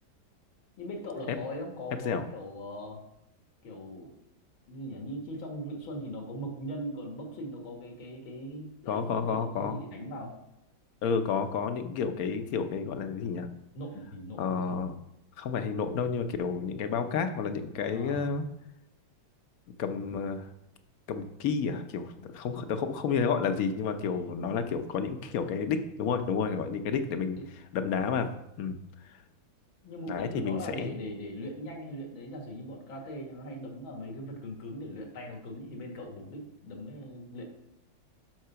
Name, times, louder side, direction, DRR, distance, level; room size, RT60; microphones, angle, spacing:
voice 1, 0.8-3.0 3.6-4.1 4.7-10.4 13.7-14.8 17.9-18.3 24.0-24.3 27.3-27.4 29.8-37.4, equal, 80° left, 1 dB, 2.5 m, -40 dB
voice 2, 8.9-9.9 11.0-13.5 14.4-14.9 15.4-18.4 19.8-20.5 21.1-27.4 27.7-28.3 28.6-28.8 30.1-30.9, left 6 dB, 60° left, 8 dB, 1.0 m, -30 dB
7.7 x 5.9 x 5.7 m, 0.83 s
omnidirectional pair, 2.1 m